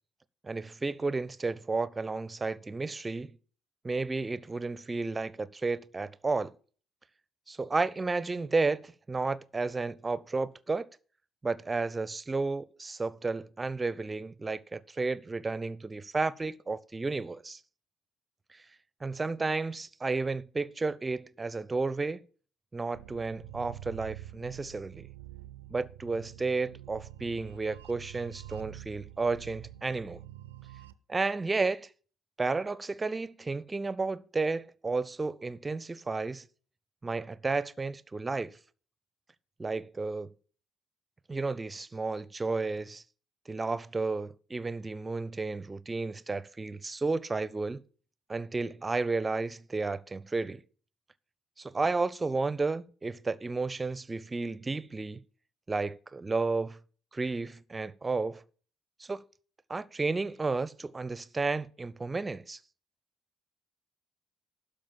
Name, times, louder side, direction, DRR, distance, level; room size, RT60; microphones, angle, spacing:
voice 1, 0.4-3.4 3.8-6.5 7.5-10.9 11.4-17.6 18.5-18.6 19.0-22.2 22.7-25.1 25.7-30.2 31.1-31.9 32.4-36.4 37.0-38.6 39.6-40.3 41.3-43.0 43.5-47.8 48.3-50.6 51.6-55.2 55.7-56.8 57.1-58.4 59.0-59.2 59.7-62.6, right 3 dB, 20° right, 0.7 m, -32 dB
sound 1, 22.9-30.9, right 14 dB, 75° right, 0.5 m, -47 dB
12.5 x 5.1 x 8.9 m
figure-of-eight pair, 50°, 0 cm